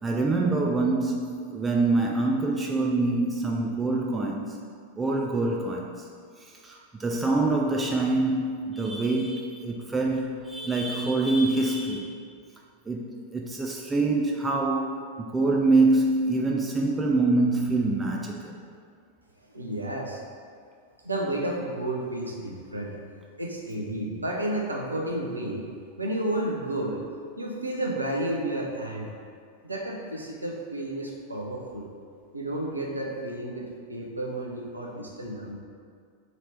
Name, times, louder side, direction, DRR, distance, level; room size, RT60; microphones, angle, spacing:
voice 1, 0.0-4.6 5.0-6.1 6.4-12.2 12.9-18.6, right 2 dB, 15° right, -1 dB, 0.3 m, -25 dB
voice 2, 19.5-20.2 21.0-23.0 23.4-25.7 26.0-27.1 27.4-29.1 29.6-31.9 32.3-35.6, right 1 dB, 80° right, -1 dB, 0.5 m, -31 dB
3.0 x 2.8 x 4.4 m, 2.2 s
figure-of-eight pair, 90°, 0 cm